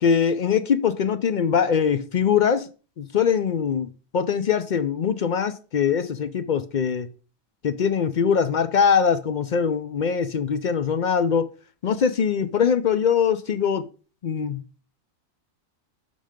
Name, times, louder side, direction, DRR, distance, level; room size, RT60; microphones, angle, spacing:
voice 1, 0.0-2.7 3.0-7.1 7.6-11.5 11.8-13.8 14.2-14.6, left 7 dB, 60° left, 0.4 m, -22 dB
11.5 x 3.9 x 5.1 m
omnidirectional pair, 1.4 m